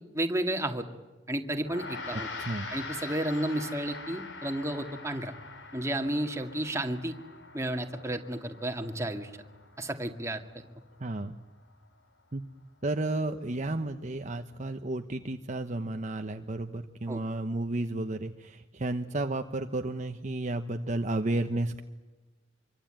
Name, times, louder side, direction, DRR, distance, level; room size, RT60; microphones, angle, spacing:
voice 1, 0.1-0.8 1.3-2.3 2.7-5.3 5.7-7.2 7.5-9.3 9.8-10.4 17.1-17.2, right 1 dB, 15° right, 5 dB, 2.1 m, -32 dB
Gong, 1.6-11.2, left 3 dB, 75° left, 3.4 m, -44 dB
voice 2, 2.4-2.7 11.0-11.4 12.3-12.4 12.8-21.8, right 2 dB, 40° right, 6 dB, 1.0 m, -32 dB
26.0 x 24.5 x 9.0 m, 1.2 s
head